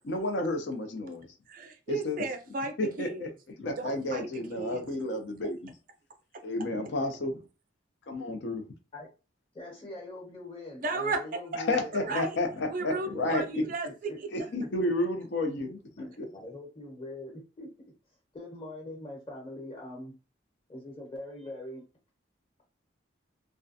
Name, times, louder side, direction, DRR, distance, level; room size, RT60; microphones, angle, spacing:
voice 1, 0.1-1.3 1.9-2.2 2.8-3.3 3.6-5.7 6.4-7.4 8.1-8.6 11.7-13.6 14.3-15.8 16.2-16.3, left 2 dB, 65° left, 0.5 m, -31 dB
voice 2, 1.5-3.3 3.8-4.8 10.8-11.2 12.0-12.4 12.7-14.3, right 3 dB, 45° right, 0.4 m, -34 dB
voice 3, 9.5-12.2 12.9-14.2 16.0-17.7 18.3-20.1 20.7-21.8, left 1 dB, 30° left, 1.1 m, -43 dB
2.3 x 2.1 x 2.6 m
head